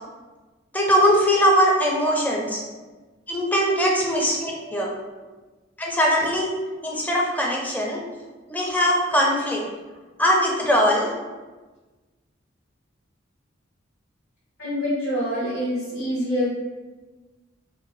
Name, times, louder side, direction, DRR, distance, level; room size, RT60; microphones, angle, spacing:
voice 1, 0.7-2.6 3.3-4.9 5.8-6.5 6.8-8.0 8.5-9.6 10.2-11.1, equal, 10° left, -2 dB, 0.4 m, -21 dB
voice 2, 14.6-16.5, equal, 90° left, -11 dB, 1.1 m, -26 dB
2.6 x 2.1 x 3.9 m, 1.3 s
head